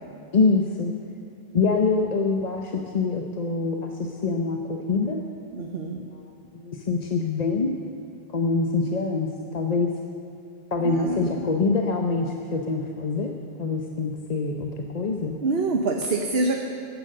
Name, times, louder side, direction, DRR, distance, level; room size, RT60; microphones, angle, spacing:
voice 1, 0.3-0.9 1.5-5.2 6.0-6.2 6.5-7.7 8.3-9.9 10.7-13.3 13.6-15.4, left 4 dB, 45° left, 2 dB, 0.9 m, -25 dB
voice 2, 5.5-6.0 10.8-11.5 15.4-16.7, right 3 dB, 70° right, 2 dB, 1.1 m, -26 dB
16.0 x 10.0 x 6.6 m, 2.4 s
omnidirectional pair, 1.1 m